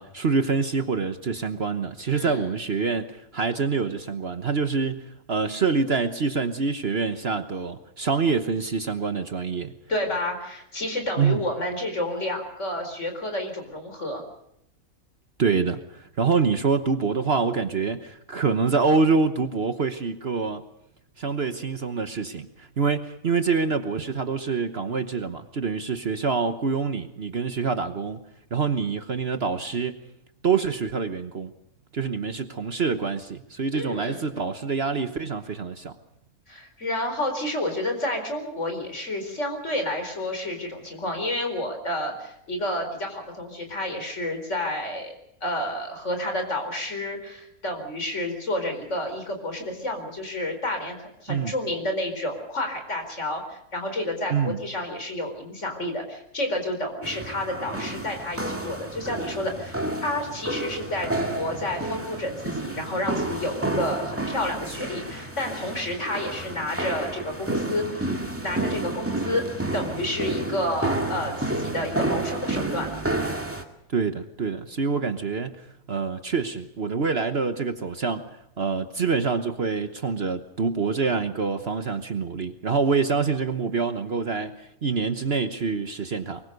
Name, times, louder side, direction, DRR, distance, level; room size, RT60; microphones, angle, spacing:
voice 1, 0.0-9.7 11.2-11.4 15.4-20.6 21.2-28.2 28.5-30.0 30.4-31.5 31.9-35.9 51.3-51.5 54.3-54.6 73.9-75.6 75.9-78.3 78.6-86.4, right 5 dB, 45° right, 9 dB, 1.3 m, -26 dB
voice 2, 2.1-2.5 9.9-14.2 33.7-34.2 36.5-45.1 45.4-59.7 60.0-68.1 68.4-69.4 69.7-73.0, left 1 dB, 55° left, 5 dB, 4.8 m, -30 dB
sound 1, 57.0-73.6, right 2 dB, 10° right, 2.1 m, -30 dB
23.5 x 22.0 x 6.6 m, 0.77 s
omnidirectional pair, 1.5 m